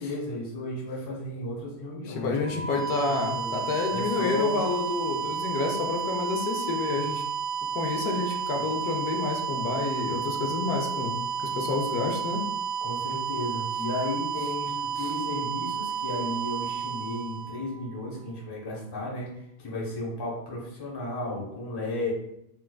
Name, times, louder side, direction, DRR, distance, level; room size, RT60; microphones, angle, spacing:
voice 1, 0.0-3.5 3.9-4.6 12.8-22.1, left 2 dB, 25° left, -4 dB, 0.6 m, -34 dB
voice 2, 2.1-7.2 7.7-12.4 15.0-15.1, left 3 dB, 85° left, 2 dB, 1.1 m, -29 dB
sound 1, 2.4-18.2, right 6 dB, 55° right, 1.1 m, -32 dB
4.4 x 2.3 x 2.2 m, 0.79 s
omnidirectional pair, 1.6 m